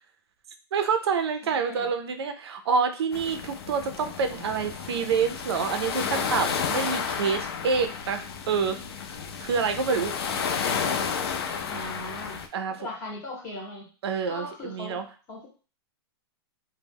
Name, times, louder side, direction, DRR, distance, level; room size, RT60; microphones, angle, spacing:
voice 1, 0.7-8.8 9.4-10.1 12.5-12.9 14.0-15.0, right 5 dB, 80° right, 7 dB, 0.5 m, -27 dB
voice 2, 1.4-1.9 4.3-4.9 11.7-12.4 12.7-13.9 14.3-15.0 15.3-15.5, left 1 dB, 20° left, -1 dB, 0.6 m, -39 dB
sound 1, 3.1-12.5, left 6 dB, 75° left, 0.4 m, -31 dB
2.1 x 2.0 x 3.3 m, 0.38 s
supercardioid pair, 175°, 13 cm